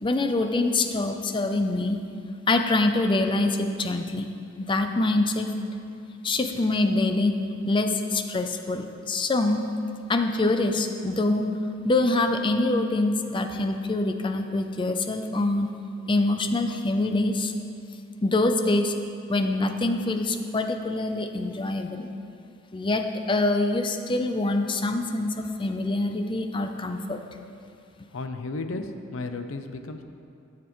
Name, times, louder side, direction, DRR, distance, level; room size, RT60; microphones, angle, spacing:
voice 1, 0.0-2.0 2.5-4.3 4.6-5.5 6.2-7.3 7.7-9.6 10.1-11.4 11.8-15.7 16.1-17.5 18.2-18.9 19.3-22.1 22.7-27.2, left 2 dB, 25° left, 6 dB, 0.5 m, -25 dB
voice 2, 28.1-30.0, left 3 dB, 85° left, 7 dB, 0.6 m, -34 dB
13.0 x 7.3 x 3.1 m, 2.5 s
head